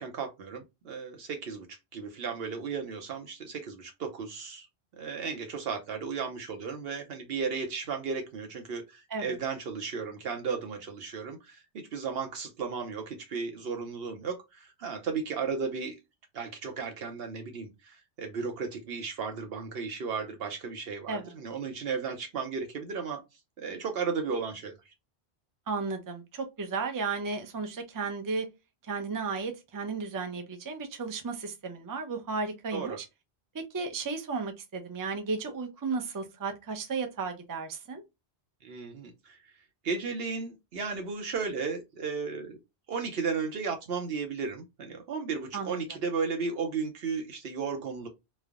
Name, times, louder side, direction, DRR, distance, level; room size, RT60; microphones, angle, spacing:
voice 1, 0.0-1.7 1.9-4.7 5.0-15.9 16.3-23.2 23.6-24.7 32.7-33.0 38.6-39.4 39.8-42.6 42.9-48.1, right 5 dB, 70° right, 0.8 m, -34 dB
voice 2, 25.7-28.5 28.9-33.0 33.5-38.0 45.5-45.8, right 4 dB, 30° right, 0.4 m, -34 dB
3.1 x 2.0 x 2.3 m
omnidirectional pair, 1.1 m